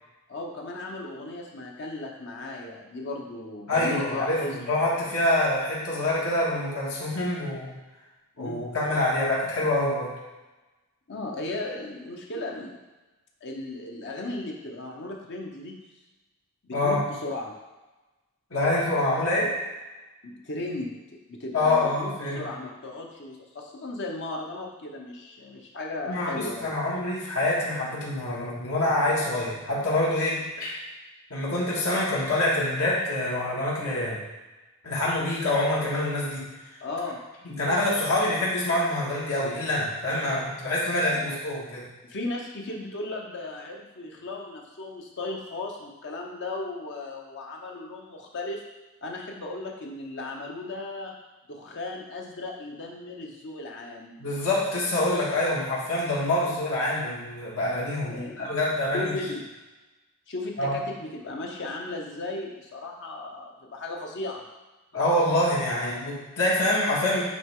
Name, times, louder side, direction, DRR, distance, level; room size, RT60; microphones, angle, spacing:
voice 1, 0.3-4.7 8.4-8.7 11.1-12.8 13.4-15.8 16.6-17.5 20.2-20.9 21.3-26.8 36.8-37.2 41.1-41.3 42.0-48.6 49.0-51.1 51.5-54.2 58.1-58.5 58.9-59.4 60.3-64.4, left 2 dB, 55° left, -1 dB, 0.9 m, -36 dB
voice 2, 3.7-7.7 8.4-10.1 16.7-17.0 18.5-19.5 21.5-22.4 26.1-30.8 31.3-34.2 34.8-36.5 37.5-41.9 54.2-59.1 60.6-60.8 64.9-67.2, left 1 dB, 75° left, -6 dB, 1.7 m, -26 dB
9.1 x 3.2 x 3.7 m, 1.1 s
head